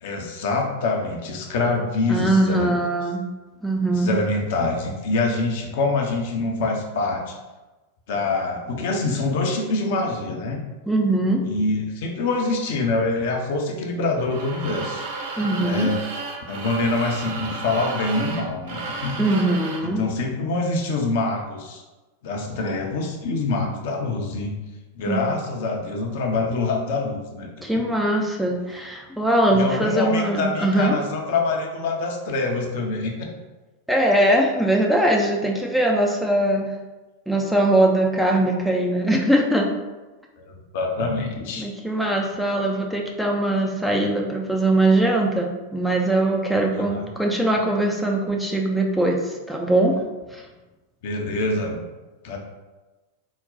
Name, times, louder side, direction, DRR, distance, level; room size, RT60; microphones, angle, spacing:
voice 1, 0.0-2.8 3.9-7.4 8.1-10.6 11.4-15.0 15.6-16.0 16.5-19.2 19.8-21.8 22.2-24.5 24.9-27.5 29.5-33.3 40.4-41.7 46.8-47.1 51.0-51.8 52.2-52.4, left 3 dB, 55° left, 1 dB, 0.7 m, -25 dB
voice 2, 2.1-3.2 3.6-4.1 10.9-11.4 15.4-15.9 19.2-20.0 25.1-25.2 27.6-31.0 33.9-36.7 37.3-39.7 41.6-50.0 50.3-50.4, right 1 dB, ahead, 0 dB, 0.4 m, -21 dB
sound 1, 14.2-19.9, right 3 dB, 50° right, 0.6 m, -33 dB
4.0 x 2.2 x 3.9 m, 1.2 s
figure-of-eight pair, 90°, 0 cm